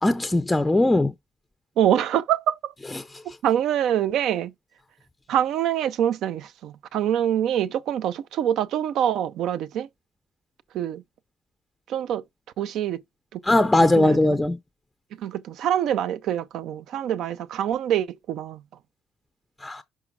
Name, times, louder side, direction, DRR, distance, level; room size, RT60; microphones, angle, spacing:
voice 1, 0.0-1.1 13.4-14.6 19.6-19.8, left 2 dB, 10° left, 0.5 m, -19 dB
voice 2, 1.8-2.7 3.4-4.5 5.3-9.9 10.7-11.0 11.9-12.2 12.6-13.0 13.3-13.4 14.0-14.4 15.2-18.6, right 10 dB, 70° right, 0.5 m, -25 dB
5.9 x 4.8 x 4.7 m
cardioid pair, 130°, 0 cm